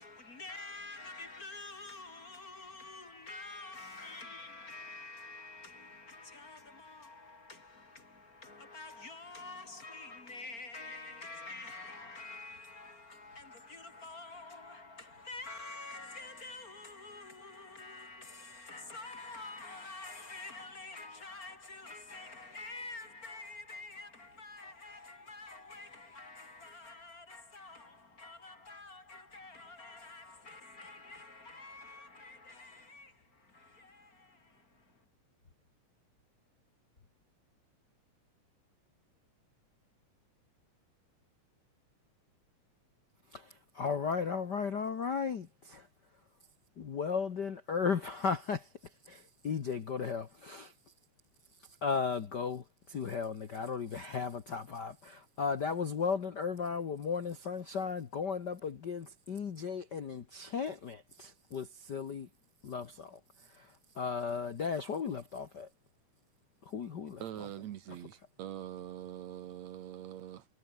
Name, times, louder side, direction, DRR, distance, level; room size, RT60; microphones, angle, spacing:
voice 1, 0.0-35.0, left 3 dB, 30° left, 2.7 m, -48 dB
voice 2, 43.3-45.9 46.8-50.7 51.8-62.3 62.6-65.7 66.6-67.2, left 5 dB, 45° left, 1.5 m, -36 dB
voice 3, 67.2-70.5, right 11 dB, 65° right, 2.2 m, -43 dB
omnidirectional pair, 3.6 m